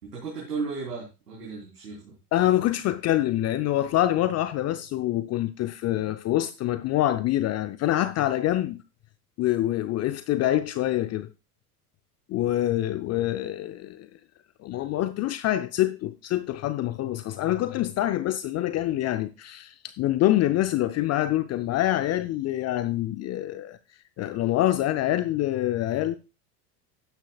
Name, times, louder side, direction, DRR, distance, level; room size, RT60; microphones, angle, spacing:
voice 1, 0.0-2.2, right 4 dB, 85° right, 3.6 m, -35 dB
voice 2, 2.3-8.8 9.4-11.3 12.3-14.1 14.6-23.8 24.2-26.2, left 14 dB, 35° left, 0.6 m, -25 dB
12.0 x 10.0 x 2.4 m
hypercardioid pair, 80°, 46 cm